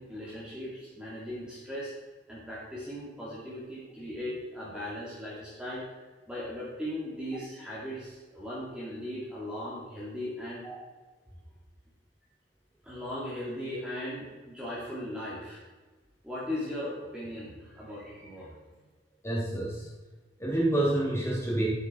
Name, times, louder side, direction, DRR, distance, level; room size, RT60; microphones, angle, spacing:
voice 1, 0.0-1.9 2.3-10.7 12.8-15.6 16.2-18.6, left 1 dB, 5° right, -8 dB, 2.5 m, -38 dB
voice 2, 19.2-19.9 20.4-21.7, right 1 dB, 15° left, -5 dB, 3.1 m, -28 dB
12.5 x 8.0 x 4.5 m, 1.2 s
head